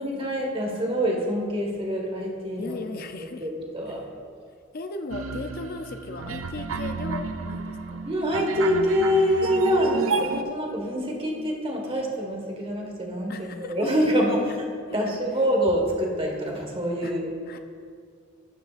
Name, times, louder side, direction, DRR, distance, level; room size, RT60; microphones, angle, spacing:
voice 1, 0.0-2.7 3.4-4.0 8.0-17.3, equal, 30° right, 0 dB, 1.5 m, -25 dB
voice 2, 2.6-3.5 4.7-8.0 11.1-11.6 13.3-14.6 14.9-15.0 17.0-17.1 17.5-17.6, left 3 dB, 50° left, 7 dB, 0.5 m, -37 dB
sound 1, 5.1-10.4, right 4 dB, 85° right, 0.5 m, -31 dB
12.0 x 9.1 x 2.5 m, 2.2 s
head